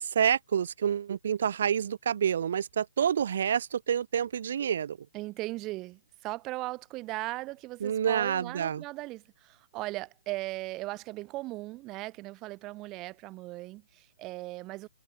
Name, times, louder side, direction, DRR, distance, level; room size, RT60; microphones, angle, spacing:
voice 1, 0.0-5.0 7.8-8.8, right 8 dB, 55° right, 1.7 m, -28 dB
voice 2, 5.1-14.9, right 19 dB, 20° right, 5.7 m, -38 dB
hypercardioid pair, 160°, 0 cm